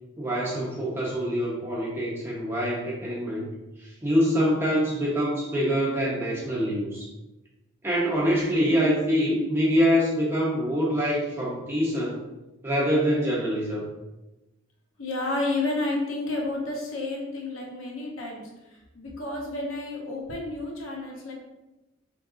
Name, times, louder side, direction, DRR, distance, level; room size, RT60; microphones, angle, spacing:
voice 1, 0.2-3.5 3.8-7.1 7.8-12.2 12.6-13.8, equal, 10° right, -5 dB, 0.6 m, -25 dB
voice 2, 15.0-18.4 18.9-21.3, left 2 dB, 80° left, -1 dB, 0.9 m, -30 dB
5.2 x 3.6 x 2.6 m, 1.0 s
head